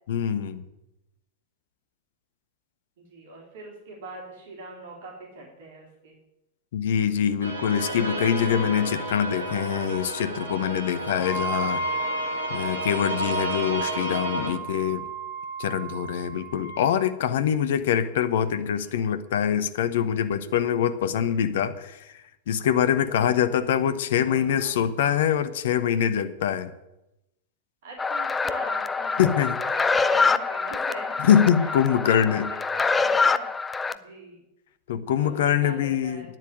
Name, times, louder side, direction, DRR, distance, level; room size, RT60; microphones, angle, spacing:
voice 1, 0.1-0.6 6.7-11.8 12.5-15.1 15.6-22.0 22.5-26.7 29.2-29.6 31.2-32.5 34.9-36.4, left 9 dB, 55° left, 13 dB, 0.9 m, -24 dB
voice 2, 3.0-6.2 11.6-12.1 14.6-15.0 18.6-19.0 24.3-24.7 27.8-33.5 33.9-34.4 35.2-36.3, right 2 dB, 55° right, -1 dB, 3.7 m, -42 dB
sound 1, 7.4-14.5, right 1 dB, 85° left, 2.8 m, -32 dB
Wind instrument woodwind instrument, 11.2-17.0, right 3 dB, 30° left, 6.0 m, -34 dB
sound 2, 28.0-33.9, left 4 dB, 15° left, 0.5 m, -25 dB
9.9 x 7.6 x 9.0 m, 0.93 s
figure-of-eight pair, 90°, 0 cm